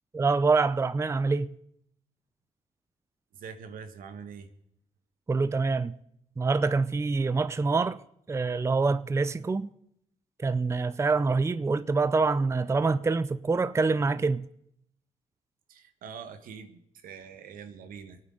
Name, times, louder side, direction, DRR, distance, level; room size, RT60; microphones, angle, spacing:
voice 1, 0.1-1.6 5.3-5.9 6.4-8.0 8.3-9.7 10.4-14.5, right 4 dB, 20° right, 0.5 m, -25 dB
voice 2, 3.3-4.5 15.7-18.2, right 6 dB, 80° right, 1.3 m, -44 dB
24.5 x 9.1 x 3.8 m
cardioid pair, 75°, 14 cm